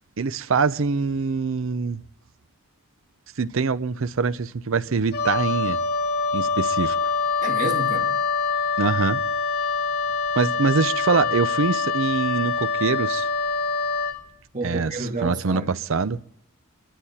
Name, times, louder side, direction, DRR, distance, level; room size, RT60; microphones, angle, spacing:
voice 1, 0.2-2.0 3.4-5.8 6.3-7.1 8.8-9.2 10.4-13.3 14.6-16.2, right 4 dB, 65° right, 0.6 m, -24 dB
Wind instrument woodwind instrument, 5.1-14.2, left 4 dB, 50° left, 1.3 m, -25 dB
voice 2, 7.4-8.1 14.5-15.7, right 2 dB, 40° right, 2.1 m, -30 dB
23.5 x 12.0 x 4.2 m
head